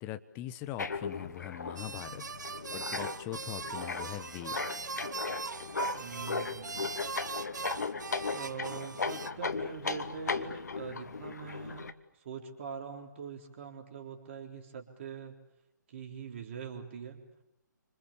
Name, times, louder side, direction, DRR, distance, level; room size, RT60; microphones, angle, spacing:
voice 1, 0.0-2.2 2.7-4.7, left 14 dB, 20° left, 12 dB, 1.2 m, -41 dB
sound 1, 0.8-11.9, left 4 dB, 65° left, 1.5 m, -37 dB
sound 2, 1.8-9.3, right 4 dB, 70° right, 1.1 m, -40 dB
voice 2, 5.9-6.9 8.3-11.9 12.2-15.3 15.9-17.2, right 6 dB, 40° right, 3 dB, 3.7 m, -43 dB
29.5 x 26.0 x 7.3 m, 0.82 s
figure-of-eight pair, 140°, 10 cm